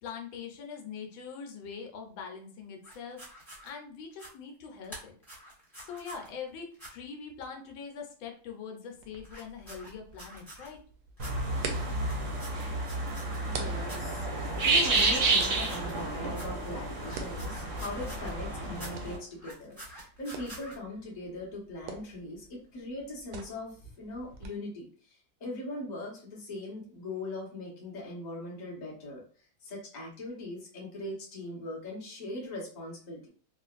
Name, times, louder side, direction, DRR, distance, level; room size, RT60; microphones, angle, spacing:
voice 1, 0.0-5.1 5.8-10.8, left 6 dB, 80° left, 2 dB, 1.4 m, -43 dB
sound 1, 2.8-3.7 4.1-4.3 4.8-6.3 6.7-6.9 9.2-10.7 11.2-11.3 11.9-13.5 13.8-14.0 14.5-16.0 16.3-16.5 16.9-18.4 18.7-18.9 19.3-20.7, right 1 dB, 10° right, 1.1 m, -47 dB
sound 2, 9.0-24.5, right 5 dB, 70° right, 1.1 m, -47 dB
sound 3, 11.2-19.2, right 3 dB, 55° right, 0.9 m, -30 dB
voice 2, 13.5-29.2 29.6-33.3, left 1 dB, 30° left, -3 dB, 0.8 m, -40 dB
3.6 x 2.4 x 2.4 m, 0.43 s
omnidirectional pair, 2.2 m